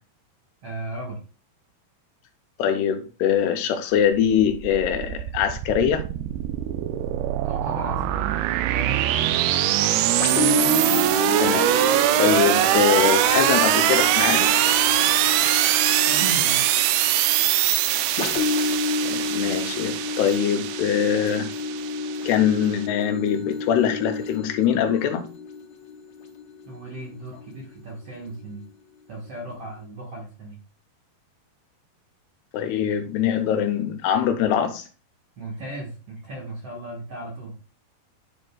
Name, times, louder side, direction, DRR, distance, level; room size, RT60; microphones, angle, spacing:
voice 1, 0.6-1.2 7.5-8.3 8.7-9.4 16.1-16.7 26.6-28.7 29.1-30.6 35.4-37.6, right 1 dB, 60° right, -2 dB, 1.6 m, -36 dB
voice 2, 2.6-6.1 10.9-11.1 11.4-11.9 12.2-14.5 19.0-21.5 22.3-25.2 32.5-34.9, left 9 dB, 85° left, 7 dB, 2.8 m, -23 dB
sound 1, 4.2-22.8, right 12 dB, 80° right, 2.4 m, -22 dB
sound 2, 10.2-27.7 28.3-28.4, left 4 dB, 65° left, 1.8 m, -30 dB
9.8 x 5.2 x 2.2 m, 0.37 s
omnidirectional pair, 4.7 m